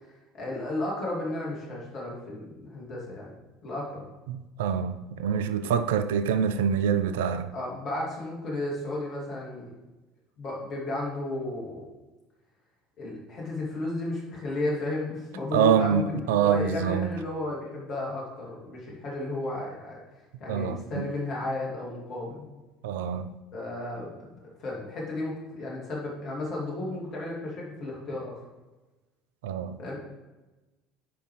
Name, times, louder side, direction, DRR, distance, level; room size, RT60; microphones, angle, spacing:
voice 1, 0.1-3.3 3.6-4.1 7.5-9.7 10.4-11.9 13.0-20.0 20.4-22.4 23.5-28.4 29.8-30.0, left 2 dB, 45° left, 2.6 m, -33 dB
voice 2, 4.3-7.5 15.5-17.1 20.5-21.1 22.8-23.3 29.4-29.8, right 8 dB, 65° right, 0.3 m, -25 dB
9.4 x 5.2 x 3.3 m
figure-of-eight pair, 65°, 0 cm